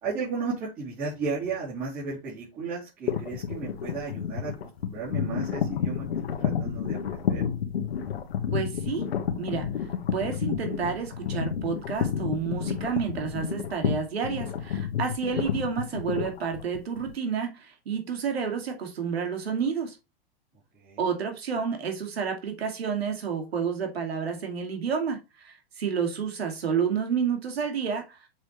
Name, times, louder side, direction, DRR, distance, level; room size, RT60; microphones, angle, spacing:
voice 1, 0.0-7.4 20.8-21.0, right 4 dB, 30° right, 3.3 m, -34 dB
sound 1, 3.1-17.1, left 8 dB, 85° left, 1.5 m, -30 dB
voice 2, 8.5-9.1 9.4-9.7 10.1-20.0 21.0-28.2, right 6 dB, 85° right, 2.5 m, -30 dB
7.3 x 4.5 x 3.2 m
hypercardioid pair, 145°, 30 cm